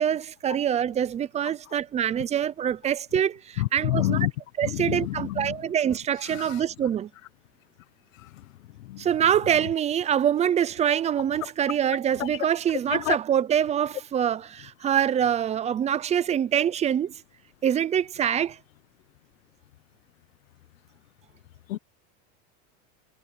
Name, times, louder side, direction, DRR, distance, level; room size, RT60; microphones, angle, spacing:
voice 1, 0.0-4.2 4.6-7.1 9.0-17.1 17.6-18.6, right 9 dB, 15° right, 0.6 m, -25 dB
voice 2, 3.6-4.3 4.6-5.6 6.3-6.6 8.2-8.4 8.8-9.1 11.4-11.5 12.2-12.3 12.9-13.2 21.7-21.8, left 17 dB, 90° left, 1.1 m, -28 dB
supercardioid pair, 145°, 38 cm